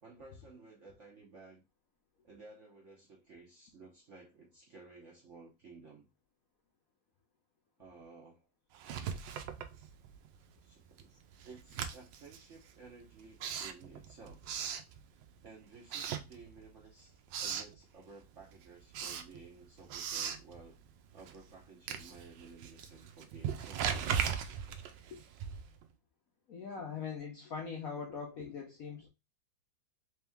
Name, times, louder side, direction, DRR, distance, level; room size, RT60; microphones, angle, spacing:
voice 1, 0.0-1.6 2.2-6.1 7.8-8.5 10.6-14.6 15.4-20.8 21.1-24.2, right 4 dB, 55° right, 0.8 m, -55 dB
Writing, 8.7-10.3 10.6-15.4 15.8-16.8 17.1-17.8 18.2-25.8, right 8 dB, 75° right, 1.2 m, -39 dB
voice 2, 26.5-29.1, left 6 dB, 65° left, 0.9 m, -41 dB
3.5 x 3.0 x 3.4 m
omnidirectional pair, 2.2 m